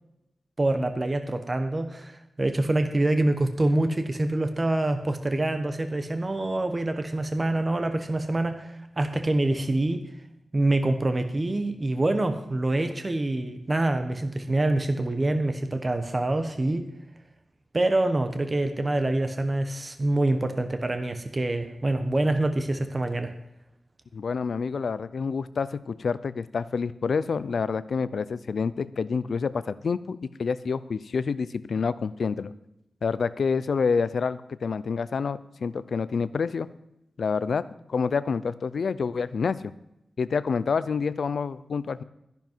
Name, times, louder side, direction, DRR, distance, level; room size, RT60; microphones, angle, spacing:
voice 1, 0.6-10.0 10.5-16.9 17.7-23.3, right 2 dB, 30° right, 8 dB, 1.1 m, -26 dB
voice 2, 24.1-32.5 33.0-36.7 37.2-39.7 40.2-42.0, left 5 dB, 70° left, 15 dB, 0.6 m, -28 dB
13.5 x 10.5 x 4.6 m, 0.85 s
wide cardioid pair, 120°, 0 cm